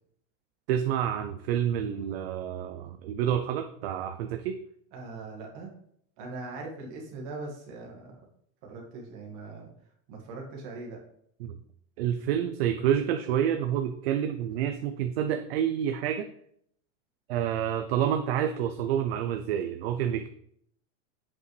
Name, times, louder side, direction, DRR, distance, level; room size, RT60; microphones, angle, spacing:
voice 1, 0.7-4.6 11.4-11.6 12.0-16.3 17.3-20.3, right 9 dB, 50° right, 7 dB, 0.5 m, -28 dB
voice 2, 4.9-5.7 6.2-8.1 8.6-9.7 10.1-11.0, right 3 dB, 35° right, -1 dB, 1.6 m, -40 dB
7.4 x 5.1 x 3.2 m, 0.67 s
supercardioid pair, 180°, 39 cm